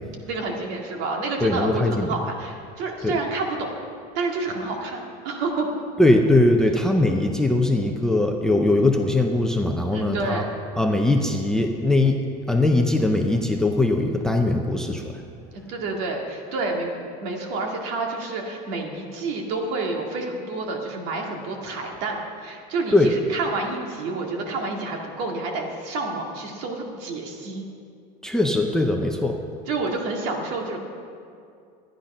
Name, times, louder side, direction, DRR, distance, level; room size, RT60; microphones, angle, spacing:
voice 1, 0.3-3.7 4.1-5.7 9.9-10.6 15.5-16.9 17.2-27.7 29.7-30.8, right 3 dB, 65° right, 1 dB, 2.0 m, -29 dB
voice 2, 1.4-2.1 3.0-3.2 6.0-10.4 10.8-12.2 12.5-15.1 22.9-23.1 28.2-29.4, left 2 dB, 5° left, 3 dB, 0.5 m, -20 dB
13.0 x 10.5 x 5.4 m, 2.4 s
cardioid pair, 165°, 19 cm